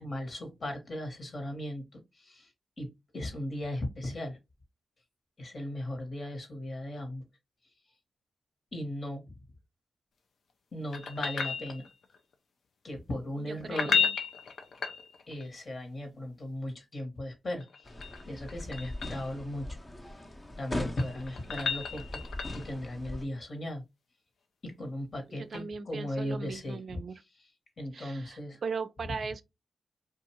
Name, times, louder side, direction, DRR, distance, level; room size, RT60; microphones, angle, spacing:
voice 1, 0.0-1.8 2.2-2.5 2.8-4.4 5.4-7.2 8.7-9.2 10.7-11.8 12.8-14.0 15.3-17.6 18.2-19.8 20.6-22.2 22.5-23.8 24.6-27.0 27.8-28.6, left 1 dB, 50° left, 1.1 m, -37 dB
sound 1, 10.9-12.2 13.6-15.5 17.6-19.3 20.7-22.8 25.5-25.6, left 6 dB, 75° left, 0.5 m, -33 dB
voice 2, 13.4-14.2 25.3-27.2 27.9-29.4, right 5 dB, 65° right, 0.3 m, -38 dB
sound 2, 17.9-23.2, left 1 dB, 30° left, 0.6 m, -40 dB
2.5 x 2.3 x 2.8 m
supercardioid pair, 50°, 0 cm